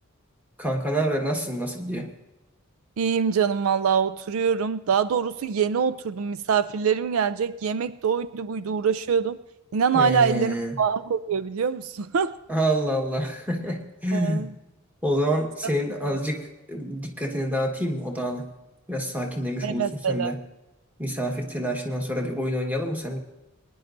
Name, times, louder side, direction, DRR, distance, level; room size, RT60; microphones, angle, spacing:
voice 1, 0.6-2.1 9.9-10.8 12.5-14.5 15.0-18.5 18.9-20.4 21.0-23.2, equal, 5° right, 1 dB, 1.5 m, -27 dB
voice 2, 3.0-9.4 9.7-12.4 14.1-14.5 15.6-15.7 19.6-20.3, right 6 dB, 70° right, 13 dB, 0.4 m, -24 dB
22.0 x 10.5 x 2.6 m, 1.0 s
head